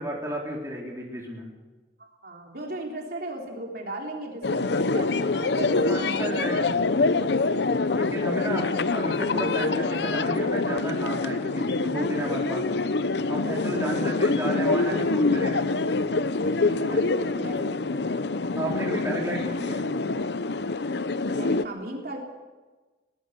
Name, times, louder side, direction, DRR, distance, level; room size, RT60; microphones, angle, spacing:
voice 1, 0.0-1.5 5.7-6.7 7.9-12.7 13.3-15.7 16.9-17.0 18.6-19.9, right 1 dB, 15° right, -2 dB, 3.9 m, -32 dB
voice 2, 2.0-6.1 7.9-8.6 13.7-14.2 16.6-17.6 17.9-18.3 21.3-22.2, right 1 dB, 55° right, 0 dB, 3.7 m, -37 dB
sound 1, 4.4-21.6, left 3 dB, 65° left, 0.7 m, -25 dB
22.5 x 19.0 x 6.7 m, 1.3 s
head